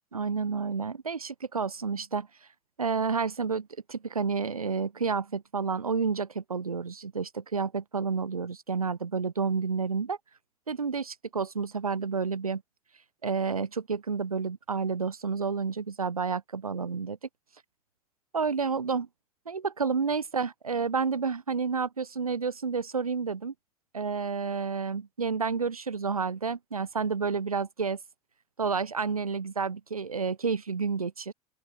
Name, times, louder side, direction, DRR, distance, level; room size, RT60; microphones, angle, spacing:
voice 1, 0.1-2.3 2.8-10.2 10.7-12.6 13.2-17.2 18.3-19.1 19.5-23.5 23.9-28.0 28.6-31.3, right 5 dB, 85° right, 2.1 m, -30 dB
open air
figure-of-eight pair, 75°, 18 cm